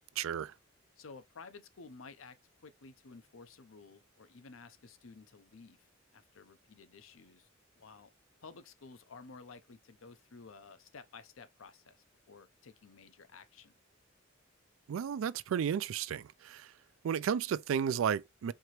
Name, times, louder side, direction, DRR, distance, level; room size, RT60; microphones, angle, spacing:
voice 1, 0.2-0.5 14.9-16.7 17.0-18.5, right 8 dB, 80° right, 0.3 m, -33 dB
voice 2, 1.0-2.4 2.6-7.5 7.8-8.1 8.4-13.7, left 4 dB, 80° left, 0.7 m, -53 dB
4.6 x 2.9 x 3.0 m
head